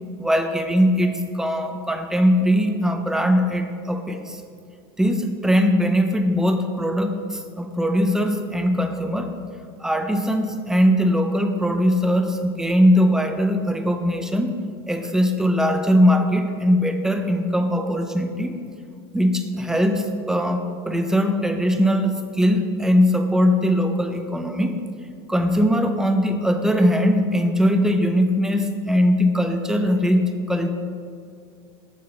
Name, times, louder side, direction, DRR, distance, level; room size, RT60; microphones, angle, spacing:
voice 1, 0.2-4.4 5.0-9.3 9.8-14.5 14.9-18.6 19.1-24.8 25.3-30.7, equal, 5° right, 6 dB, 0.5 m, -20 dB
7.4 x 3.9 x 6.1 m, 2.3 s
supercardioid pair, 115°, 12 cm